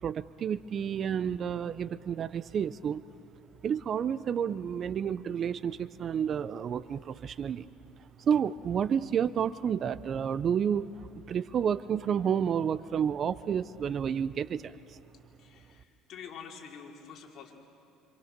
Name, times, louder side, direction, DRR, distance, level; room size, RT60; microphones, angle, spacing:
voice 1, 0.0-3.0 3.6-7.7 8.2-15.0, right 8 dB, 45° right, 16 dB, 0.5 m, -30 dB
voice 2, 15.4-17.5, left 7 dB, 50° left, -1 dB, 4.0 m, -47 dB
27.0 x 26.5 x 6.7 m, 2.6 s
cardioid pair, 105°, 0 cm